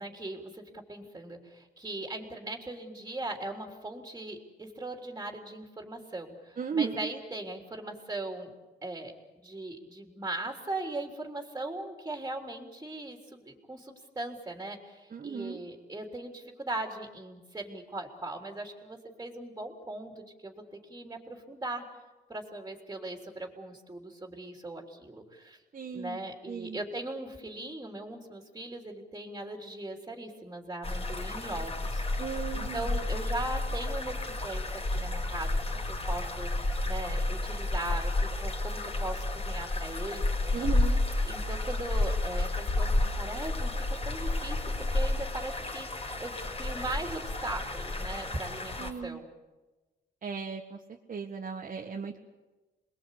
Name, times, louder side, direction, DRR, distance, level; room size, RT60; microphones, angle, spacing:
voice 1, 0.0-8.5 8.8-9.1 9.4-21.9 22.3-25.6 25.9-32.3 32.5-35.6 35.9-36.5 36.9-40.8 41.2-44.6 44.9-49.3, right 2 dB, 15° right, 2 dB, 3.6 m, -39 dB
voice 2, 6.6-7.1 15.1-15.6 25.7-26.2 26.5-26.8 32.2-32.9 40.5-41.0 48.8-49.2 50.2-50.8 51.1-52.3, right 6 dB, 40° right, 1 dB, 1.7 m, -35 dB
sound 1, 30.8-48.9, left 2 dB, 30° left, 5.0 m, -31 dB
27.5 x 21.0 x 8.5 m, 1.2 s
cardioid pair, 90°, 20 cm